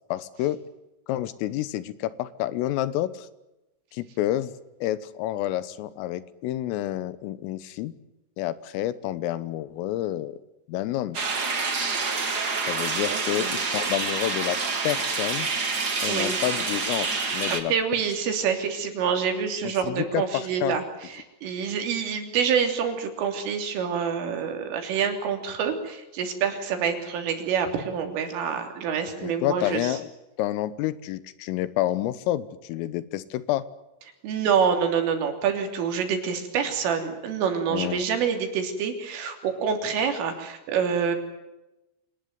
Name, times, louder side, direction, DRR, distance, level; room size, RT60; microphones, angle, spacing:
voice 1, 0.1-0.6 1.1-3.3 3.9-4.5 4.8-7.9 8.4-10.4 10.7-11.2 12.6-15.5 16.0-17.7 19.6-20.8 29.2-30.1 30.4-33.7 37.7-38.0, left 14 dB, 85° left, 16 dB, 3.7 m, -29 dB
sound 1, 11.1-17.6, right 4 dB, 40° right, 1.4 m, -27 dB
voice 2, 13.1-13.5 16.1-16.4 17.7-30.0 34.2-41.2, right 7 dB, 75° right, 5 dB, 5.7 m, -27 dB
26.5 x 19.5 x 9.4 m, 0.96 s
omnidirectional pair, 5.8 m